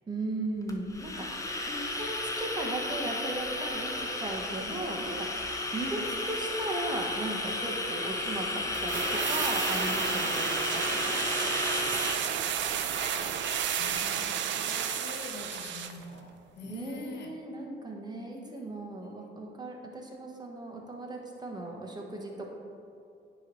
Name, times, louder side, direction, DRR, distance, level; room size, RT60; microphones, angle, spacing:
voice 1, 0.1-1.3 1.7-5.3 5.7-11.3 16.6-22.4, right 2 dB, 20° right, 0 dB, 1.2 m, -37 dB
sound 1, 0.7-14.1, left 2 dB, 15° left, 0.7 m, -33 dB
voice 2, 1.2-1.6 4.5-4.8 6.0-6.2 8.3-9.0 9.7-10.0 10.9-11.6 12.0-12.4 13.8-17.3 18.3-19.3, left 4 dB, 60° left, 3 dB, 1.0 m, -47 dB
sound 2, 8.7-16.0 16.3-16.4, right 9 dB, 70° right, 0.5 m, -32 dB
8.9 x 3.2 x 5.4 m, 2.6 s
cardioid pair, 90°, 20 cm